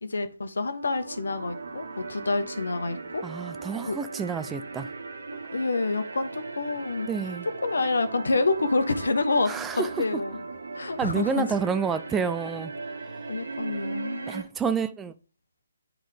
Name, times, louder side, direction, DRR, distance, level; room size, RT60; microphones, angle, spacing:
voice 1, 0.0-3.2 3.9-4.0 5.3-7.1 7.4-10.4 10.7-11.4 13.3-14.3, left 3 dB, 80° left, 1.0 m, -28 dB
sound 1, 0.7-14.4, right 4 dB, 80° right, 1.5 m, -38 dB
voice 2, 3.2-4.9 7.1-7.5 9.5-9.9 11.0-12.7 14.3-15.1, right 6 dB, 10° right, 0.4 m, -29 dB
9.1 x 3.6 x 3.4 m
hypercardioid pair, 155°, 0 cm